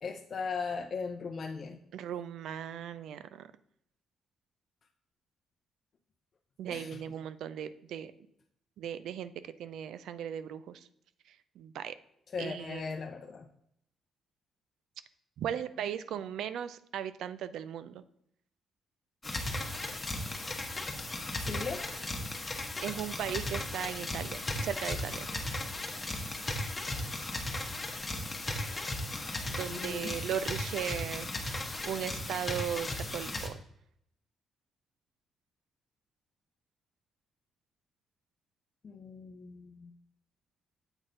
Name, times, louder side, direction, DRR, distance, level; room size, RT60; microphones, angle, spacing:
voice 1, 0.0-1.8 6.7-7.0 12.3-13.5 21.4-21.9 29.7-30.3 38.8-39.9, left 5 dB, 45° left, 3 dB, 0.5 m, -38 dB
voice 2, 1.9-3.5 6.6-8.1 8.8-10.9 11.3-12.0 12.4-12.9 15.4-18.0 22.8-25.3 29.4-31.3 31.8-33.6, right 9 dB, 80° right, 14 dB, 0.4 m, -37 dB
sound 1, 19.2-33.5, left 1 dB, 20° left, 1.1 m, -36 dB
7.9 x 4.1 x 3.8 m, 0.74 s
cardioid pair, 90°, 0 cm